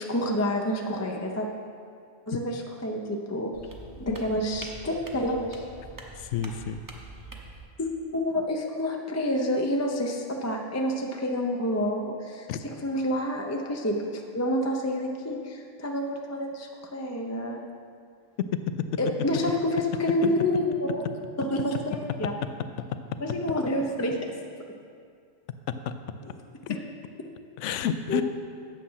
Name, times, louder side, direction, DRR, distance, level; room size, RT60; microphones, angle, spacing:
voice 1, 0.0-1.5 2.3-3.5 4.0-5.6 7.8-12.5 12.8-17.6 19.0-21.0 21.4-21.8 22.2-22.3 23.2-24.3 28.1-28.2, left 1 dB, 20° left, 1 dB, 0.4 m, -28 dB
sound 1, 3.5-7.6, right 2 dB, 20° right, 0.8 m, -44 dB
voice 2, 6.1-6.8 12.5-12.6 18.8-18.9 25.9-26.0 26.6-26.8 27.6-28.2, left 8 dB, 70° left, 11 dB, 0.9 m, -30 dB
9.0 x 7.5 x 5.6 m, 2.3 s
omnidirectional pair, 1.4 m